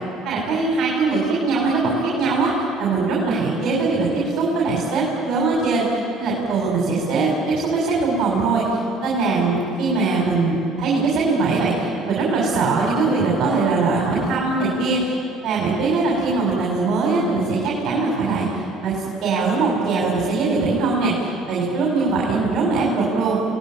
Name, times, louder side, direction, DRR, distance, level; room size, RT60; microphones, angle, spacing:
voice 1, 0.2-2.5 2.8-15.1 15.4-18.5 18.8-23.4, right 3 dB, 60° right, -4 dB, 6.3 m, -21 dB
28.0 x 19.5 x 9.0 m, 2.8 s
cardioid pair, 110°, 0 cm